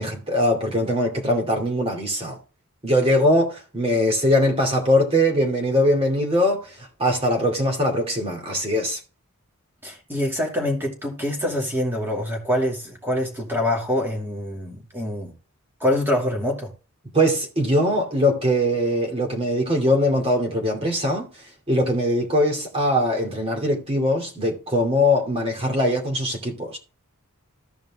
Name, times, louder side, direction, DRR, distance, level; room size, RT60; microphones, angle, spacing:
voice 1, 0.0-2.4 2.8-9.0 17.1-21.3 21.7-26.8, equal, 25° right, 2.6 m, -21 dB
voice 2, 9.8-15.3 15.8-16.7, left 1 dB, 10° right, 2.4 m, -25 dB
15.0 x 5.1 x 3.6 m
head